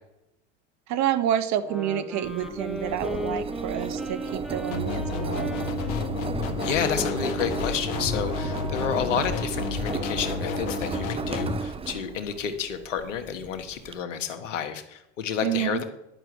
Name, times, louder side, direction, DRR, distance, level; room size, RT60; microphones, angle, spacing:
voice 1, 0.9-5.5 15.4-15.8, right 10 dB, 50° right, 13 dB, 1.0 m, -28 dB
sound 1, 1.6-9.2, equal, ahead, 1.6 m, -37 dB
Engine, 2.2-13.9, right 5 dB, 15° right, 0.6 m, -35 dB
sound 2, 4.7-11.6, left 5 dB, 60° left, 1.5 m, -31 dB
voice 2, 6.6-15.8, left 7 dB, 85° left, 9 dB, 1.4 m, -30 dB
11.0 x 6.1 x 7.9 m, 0.86 s
hypercardioid pair, 85°, 37 cm